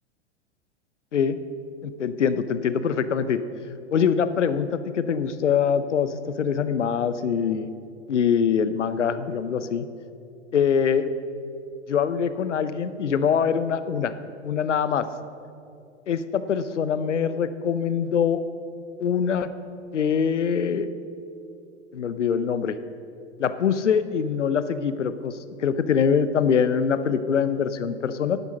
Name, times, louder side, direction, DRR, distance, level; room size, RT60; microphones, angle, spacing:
voice 1, 1.8-3.4 3.9-7.7 8.1-9.9 10.5-11.1 11.9-14.1 14.4-15.1 16.1-18.4 19.0-19.5 19.9-20.9 21.9-22.8 23.4-28.4, left 7 dB, 75° left, 13 dB, 0.7 m, -23 dB
11.0 x 9.4 x 6.2 m, 2.5 s
figure-of-eight pair, 100°, 36 cm